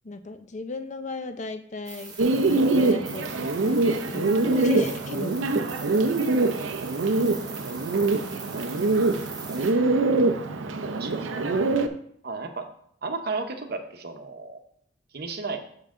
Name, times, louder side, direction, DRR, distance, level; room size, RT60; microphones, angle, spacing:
voice 1, 0.0-2.2 2.4-5.5, left 3 dB, 40° left, 8 dB, 0.6 m, -36 dB
sound 1, 1.9-9.7, right 5 dB, 20° right, 1.3 m, -42 dB
Bird, 2.2-11.9, right 3 dB, 90° right, 0.6 m, -24 dB
voice 2, 10.9-11.5 12.2-12.7 13.0-14.6 15.1-15.6, right 3 dB, 55° right, 6 dB, 0.9 m, -34 dB
7.3 x 6.8 x 3.7 m, 0.67 s
head